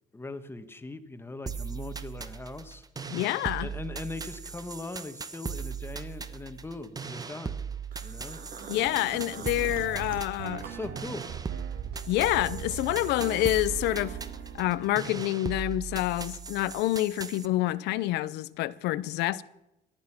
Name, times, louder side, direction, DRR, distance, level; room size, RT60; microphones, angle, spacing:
voice 1, 0.1-2.8 3.6-7.6 8.0-8.4 10.6-11.3, left 3 dB, 15° left, 1.3 m, -40 dB
sound 1, 1.5-17.5, right 6 dB, 20° right, 1.0 m, -38 dB
voice 2, 3.1-3.7 8.7-10.6 12.1-14.2 14.5-19.4, left 16 dB, 85° left, 0.7 m, -27 dB
sound 2, 7.9-11.5 11.8-13.3, right 6 dB, 55° right, 2.3 m, -45 dB
sound 3, 8.8-15.0, right 8 dB, 75° right, 1.5 m, -41 dB
18.0 x 12.0 x 5.9 m
cardioid pair, 110°, 17 cm